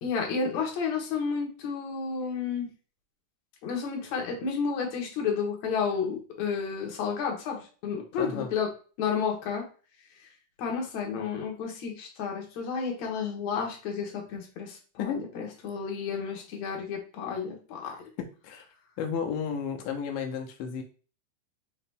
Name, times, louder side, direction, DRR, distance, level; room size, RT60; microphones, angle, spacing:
voice 1, 0.0-2.7 3.6-8.7 9.0-9.6 10.6-18.0, left 6 dB, 65° left, 1 dB, 2.2 m, -31 dB
voice 2, 8.2-8.5 15.0-15.2 17.8-18.7 19.0-20.8, left 7 dB, 90° left, 4 dB, 2.3 m, -33 dB
5.3 x 2.8 x 3.4 m, 0.37 s
omnidirectional pair, 3.8 m